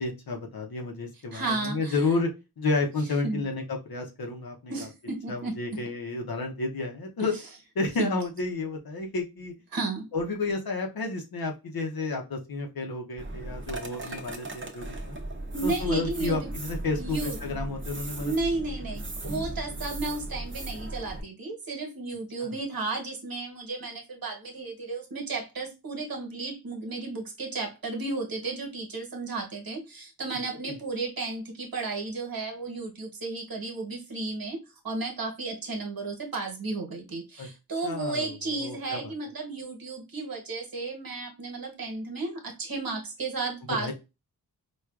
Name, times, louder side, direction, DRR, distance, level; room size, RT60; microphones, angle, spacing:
voice 1, 0.0-2.3 2.6-4.7 5.3-7.4 7.8-9.5 10.1-15.2 15.6-18.3 22.4-22.5 30.6-30.7 37.4-37.5 37.8-38.3 38.6-39.1 43.8-43.9, left 3 dB, 70° left, 0.7 m, -31 dB
voice 2, 1.3-2.0 3.2-3.5 4.7-5.8 7.2-7.4 8.0-8.1 9.7-10.1 14.0-14.2 15.5-16.4 17.0-17.5 18.2-34.6 34.8-43.9, right 3 dB, 65° right, 1.2 m, -33 dB
sound 1, 13.2-21.2, right 2 dB, 30° right, 0.7 m, -37 dB
4.5 x 2.4 x 2.3 m
wide cardioid pair, 75°, 38 cm